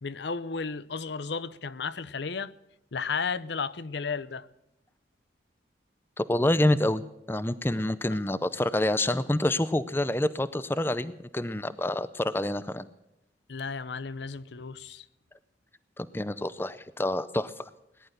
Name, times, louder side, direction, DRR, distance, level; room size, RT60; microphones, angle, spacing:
voice 1, 0.0-2.5 2.9-4.5 13.5-15.0, left 5 dB, 70° left, 0.7 m, -33 dB
voice 2, 6.2-12.9 16.0-17.5, left 1 dB, 10° left, 0.5 m, -27 dB
18.5 x 11.0 x 6.6 m
head